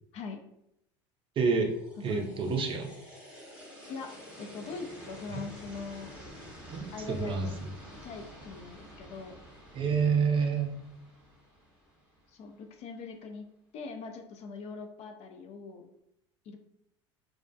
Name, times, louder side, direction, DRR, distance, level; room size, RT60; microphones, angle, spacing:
voice 1, 1.4-1.7 2.0-2.9 5.3-5.4 6.7-7.5 9.7-10.7, right 5 dB, 35° right, 3 dB, 0.5 m, -28 dB
sound 1, 1.6-12.6, equal, 10° right, 0.9 m, -49 dB
voice 2, 2.0-2.4 3.9-6.1 6.9-7.6 8.0-9.4 12.3-15.9 16.5-16.6, left 4 dB, 45° left, 5 dB, 0.4 m, -42 dB
2.3 x 2.1 x 2.6 m, 0.80 s
hypercardioid pair, 80°, 15 cm